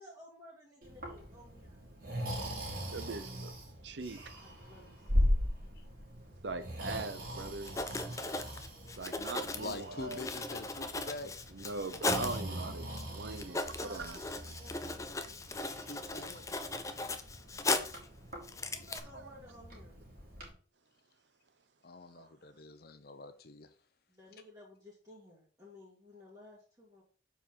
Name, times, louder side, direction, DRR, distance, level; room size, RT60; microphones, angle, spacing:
voice 1, 0.0-1.8 4.5-5.7 13.8-14.1 14.6-15.3 18.7-20.0 24.1-27.0, left 1 dB, 20° right, 1.9 m, -55 dB
Breathing, 0.8-20.5, equal, 50° right, 2.7 m, -39 dB
voice 2, 2.9-3.5 3.8-4.2 6.4-7.8 9.0-10.3 11.5-14.2 19.1-19.4 22.1-22.3, right 3 dB, 70° right, 0.8 m, -41 dB
Writing, 7.4-7.5 7.6-12.4 13.0-13.1 13.3-18.1 18.4-19.0, left 3 dB, 15° left, 0.5 m, -37 dB
voice 3, 8.5-9.0 9.6-11.3 15.9-16.7 21.8-23.7, left 2 dB, 55° left, 0.8 m, -45 dB
7.1 x 4.6 x 5.5 m
head